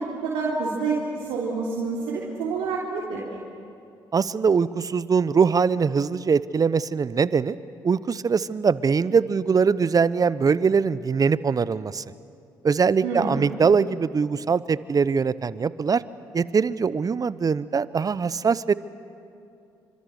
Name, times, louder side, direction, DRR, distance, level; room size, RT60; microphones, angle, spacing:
voice 1, 0.0-3.3 13.0-13.5, right 4 dB, 75° right, -5 dB, 3.5 m, -28 dB
voice 2, 4.1-7.6 7.8-12.0 12.6-16.0 16.3-18.7, right 5 dB, 40° right, 17 dB, 0.8 m, -22 dB
27.5 x 25.5 x 6.7 m, 2.6 s
hypercardioid pair, 50°, 10 cm